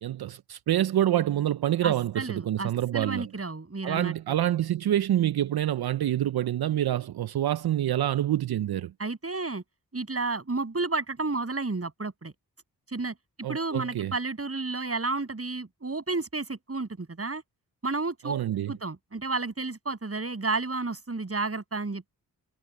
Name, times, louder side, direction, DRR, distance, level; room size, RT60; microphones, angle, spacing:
voice 1, 0.0-3.3 3.8-8.9 13.4-14.1 18.2-18.7, right 12 dB, 65° right, 0.7 m, -27 dB
voice 2, 1.8-4.1 9.0-9.6 9.9-12.3 12.9-13.1 13.5-17.4 17.8-18.4 18.7-22.1, right 3 dB, 35° right, 7.4 m, -31 dB
cardioid pair, 50°, 40 cm